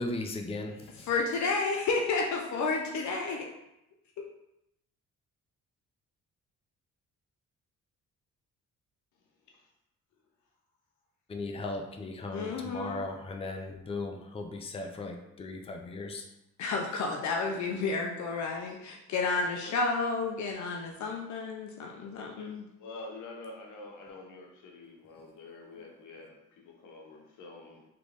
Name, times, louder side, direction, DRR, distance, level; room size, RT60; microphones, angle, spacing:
voice 1, 0.0-1.1 11.3-16.3 25.8-25.9, left 2 dB, 20° left, 3 dB, 0.5 m, -37 dB
voice 2, 1.1-3.5 12.3-13.0 16.6-22.7, left 4 dB, 70° left, 1 dB, 0.6 m, -31 dB
voice 3, 22.8-27.8, left 2 dB, 85° left, 0 dB, 1.0 m, -47 dB
3.9 x 3.3 x 3.3 m, 0.86 s
cardioid pair, 90°, 30 cm